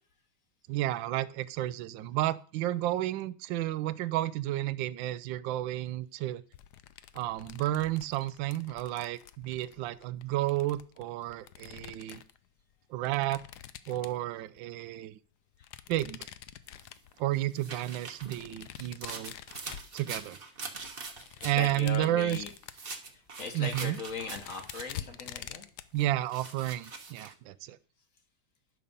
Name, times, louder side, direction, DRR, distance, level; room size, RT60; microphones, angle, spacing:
voice 1, 0.7-6.4 7.1-12.2 12.9-13.4 13.9-15.2 15.9-16.3 17.2-19.3 19.9-20.4 21.4-22.4 23.5-24.0 25.9-27.8, right 14 dB, 75° right, 16 dB, 1.3 m, -31 dB
sound 1, 6.5-12.4 13.0-14.6 15.5-17.3 18.0-20.4 20.8-22.9 23.4-23.5 23.7-26.0, left 11 dB, 70° left, 1.0 m, -47 dB
sound 2, 16.8-21.7 22.4-25.1 26.0-27.3, right 4 dB, 35° right, 1.1 m, -43 dB
voice 2, 21.3-22.5 23.0-23.1 23.4-25.6, left 4 dB, 45° left, 6 dB, 1.4 m, -39 dB
11.5 x 6.6 x 5.3 m, 0.42 s
omnidirectional pair, 2.3 m